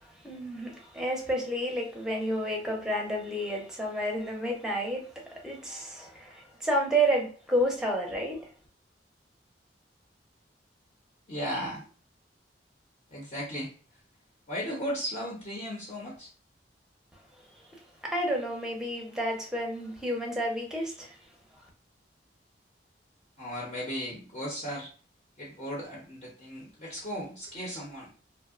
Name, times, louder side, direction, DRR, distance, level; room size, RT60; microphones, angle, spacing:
voice 1, 0.0-8.5 18.0-21.2, right 1 dB, 5° right, 0.6 m, -30 dB
voice 2, 11.3-11.8 13.1-13.7 14.5-16.3 23.4-24.9 25.4-28.1, equal, 35° left, 0.6 m, -36 dB
2.7 x 2.0 x 2.4 m
head